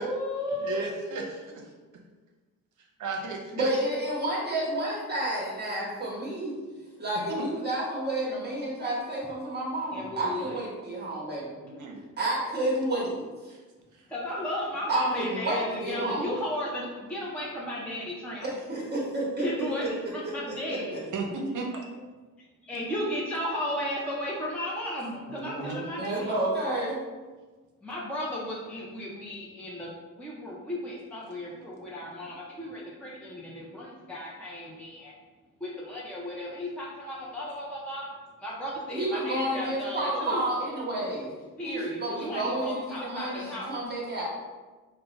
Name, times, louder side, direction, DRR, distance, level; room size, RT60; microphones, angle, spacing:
voice 1, 0.0-0.8 9.9-10.6 14.1-18.5 19.4-19.8 20.1-21.1 22.7-26.3 27.8-29.9 30.1-35.1 35.6-38.1 38.4-40.4 41.6-43.8, left 1 dB, 5° left, -5 dB, 0.5 m, -34 dB
voice 2, 0.6-1.6 3.0-3.7 7.3-7.4 11.6-12.0 13.5-13.6 13.9-14.0 21.1-21.7 25.3-25.9, right 3 dB, 65° right, 1 dB, 0.7 m, -34 dB
voice 3, 3.5-6.6 7.0-11.6 12.2-13.2 14.9-16.3 18.4-19.9 20.2-21.0 26.0-27.0 38.9-41.3 41.6-44.2, right 1 dB, 30° right, -4 dB, 1.0 m, -30 dB
3.7 x 2.1 x 3.9 m, 1.3 s
cardioid pair, 120°, 33 cm